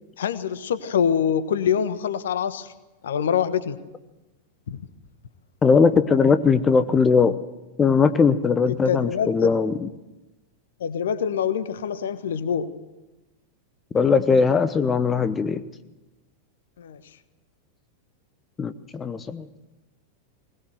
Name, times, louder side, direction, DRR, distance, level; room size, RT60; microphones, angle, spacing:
voice 1, 0.2-2.7 3.0-3.8 4.7-4.8 8.6-9.5 10.8-12.7 16.8-17.0, left 8 dB, 60° left, 14 dB, 1.3 m, -25 dB
voice 2, 5.6-7.4 7.8-9.9 13.9-15.6 18.6-19.5, left 5 dB, 20° left, 12 dB, 0.9 m, -19 dB
21.0 x 20.0 x 7.9 m, 1.0 s
figure-of-eight pair, 90°, 0 cm